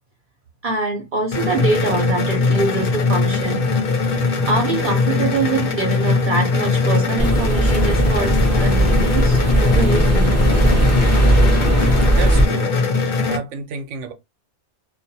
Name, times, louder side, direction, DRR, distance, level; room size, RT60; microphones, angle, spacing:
voice 1, 0.6-3.6 4.2-10.4, right 3 dB, 55° right, 0.6 m, -24 dB
sound 1, 1.3-13.4, left 4 dB, 55° left, 0.8 m, -21 dB
sound 2, 7.2-12.5, right 1 dB, 15° left, 0.7 m, -17 dB
voice 2, 12.1-12.8 13.2-14.1, right 5 dB, 90° right, 0.9 m, -30 dB
2.4 x 2.2 x 2.7 m
omnidirectional pair, 1.2 m